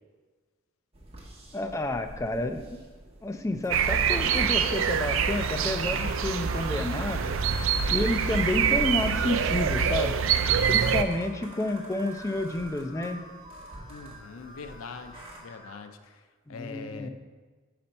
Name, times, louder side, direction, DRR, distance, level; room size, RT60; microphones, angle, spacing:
sound 1, 0.9-15.4, right 1 dB, 30° right, 1.2 m, -48 dB
voice 1, 1.5-2.8 3.2-7.3 7.9-10.2 10.7-13.2 16.5-17.1, left 2 dB, 15° left, 7 dB, 0.3 m, -30 dB
sound 2, 3.7-15.8, right 1 dB, 35° left, 1.9 m, -49 dB
sound 3, 3.7-11.0, right 6 dB, 70° right, 0.4 m, -25 dB
voice 2, 13.9-17.1, left 5 dB, 85° left, 9 dB, 0.5 m, -43 dB
5.3 x 4.3 x 5.2 m, 1.4 s
head